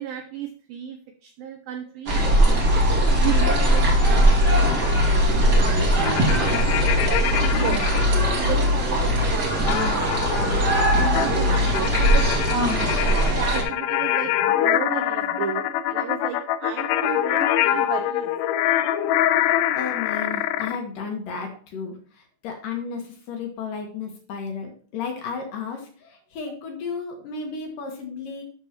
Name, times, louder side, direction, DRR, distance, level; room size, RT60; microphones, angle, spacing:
voice 1, 0.0-2.3 2.8-7.8 8.2-10.7 11.0-12.9 13.3-18.3, right 8 dB, 85° right, 6 dB, 2.1 m, -34 dB
sound 1, 2.1-13.6, equal, 35° right, 1.8 m, -20 dB
sound 2, 6.0-8.1 9.7-20.8, left 12 dB, 80° left, 2.7 m, -25 dB
sound 3, 8.9-15.6, right 1 dB, 70° right, 4.2 m, -41 dB
voice 2, 19.4-28.4, left 5 dB, 60° left, 3 dB, 2.6 m, -33 dB
12.5 x 7.1 x 2.9 m, 0.44 s
omnidirectional pair, 5.0 m